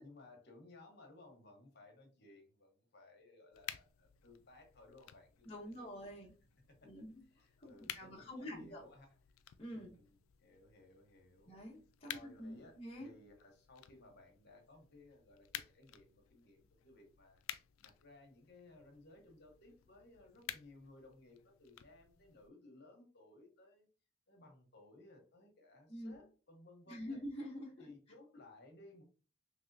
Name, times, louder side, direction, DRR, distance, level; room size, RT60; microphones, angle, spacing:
voice 1, 0.0-5.9 6.7-6.9 7.3-9.1 9.7-11.5 12.0-23.9 24.3-27.2 27.8-29.0, left 2 dB, 50° left, 3 dB, 1.0 m, -60 dB
sound 1, 3.5-22.5, left 12 dB, 70° left, 0.3 m, -53 dB
voice 2, 5.4-6.3 6.8-7.2 7.6-8.8 9.6-9.9 11.5-13.1 25.9-26.1 26.9-27.9, equal, 30° left, -4 dB, 0.7 m, -47 dB
3.4 x 3.2 x 2.6 m, 0.36 s
head